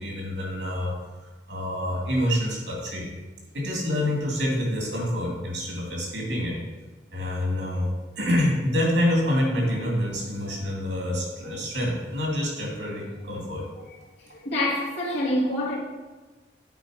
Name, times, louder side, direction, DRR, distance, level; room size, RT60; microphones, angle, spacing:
voice 1, 0.0-3.1 3.5-6.6 7.1-7.9 8.2-13.7, left 1 dB, 85° right, 2.4 m, -27 dB
voice 2, 14.3-15.8, left 1 dB, 75° left, 1.6 m, -26 dB
8.8 x 4.3 x 4.9 m
head